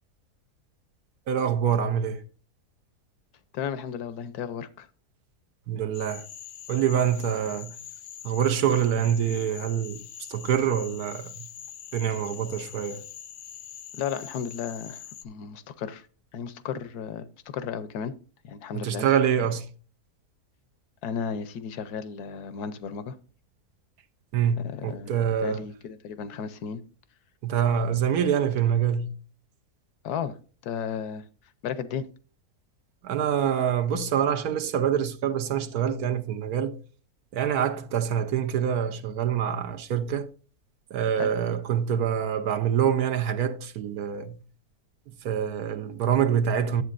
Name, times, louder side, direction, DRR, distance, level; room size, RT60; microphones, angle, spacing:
voice 1, 1.3-2.2 5.7-6.3 6.7-7.8 8.2-10.0 10.3-11.5 11.9-13.1 18.7-19.7 24.3-25.7 27.4-29.1 33.0-36.8 37.3-40.3 40.9-44.4 45.2-46.8, right 8 dB, 80° right, 1.3 m, -25 dB
voice 2, 3.5-4.9 13.9-16.1 16.3-17.3 17.5-18.1 18.5-19.1 19.4-19.5 21.0-23.2 24.7-25.1 25.4-26.8 30.0-30.4 30.6-31.2 31.6-32.1 41.2-41.3, left 7 dB, 90° left, 1.3 m, -34 dB
Cricket / Frog, 5.9-15.2, left 9 dB, 75° left, 0.5 m, -43 dB
10.5 x 8.0 x 2.5 m
omnidirectional pair, 1.6 m